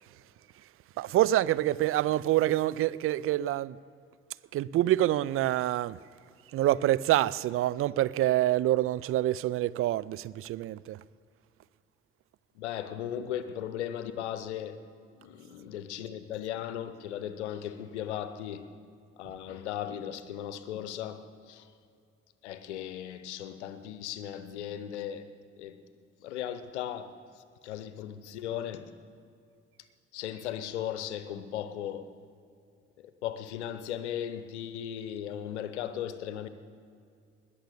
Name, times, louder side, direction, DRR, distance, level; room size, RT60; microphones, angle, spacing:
voice 1, 1.0-3.8 4.5-6.0 6.5-11.0 19.3-19.4, right 14 dB, 40° right, 0.4 m, -26 dB
voice 2, 12.6-14.8 15.2-18.6 19.2-21.7 22.4-25.3 25.6-25.8 26.2-27.2 27.6-28.9 30.1-32.1 33.2-36.5, left 10 dB, 75° left, 0.8 m, -37 dB
20.5 x 7.1 x 6.9 m
figure-of-eight pair, 40°, 34 cm